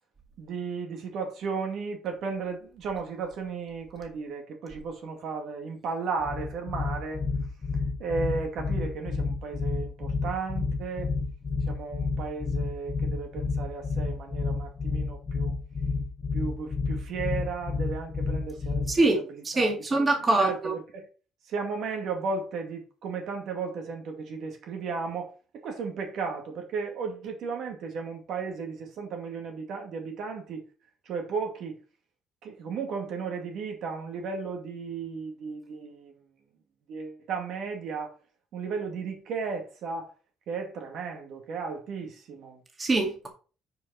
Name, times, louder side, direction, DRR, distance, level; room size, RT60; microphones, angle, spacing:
voice 1, 0.4-7.2 8.0-11.1 11.7-15.5 16.3-21.1 21.5-30.6 31.1-31.8 32.4-36.2 36.9-38.1 38.5-40.1 40.5-42.6, right 5 dB, 60° right, 2.3 m, -35 dB
sound 1, 6.2-19.1, left 4 dB, 25° left, 1.4 m, -30 dB
voice 2, 18.9-20.7 42.8-43.3, right 2 dB, 20° right, 2.0 m, -24 dB
9.1 x 5.2 x 4.3 m
cardioid pair, 135°, 0 cm